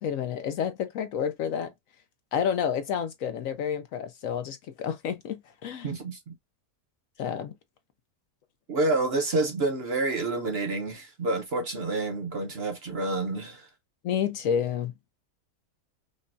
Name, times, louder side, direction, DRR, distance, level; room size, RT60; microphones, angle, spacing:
voice 1, 0.0-1.7 2.3-5.9 7.2-7.5 14.0-14.9, left 8 dB, 70° left, 0.9 m, -29 dB
voice 2, 5.8-6.3 8.7-13.7, right 2 dB, 50° right, 0.9 m, -28 dB
5.3 x 2.2 x 2.6 m
omnidirectional pair, 1.7 m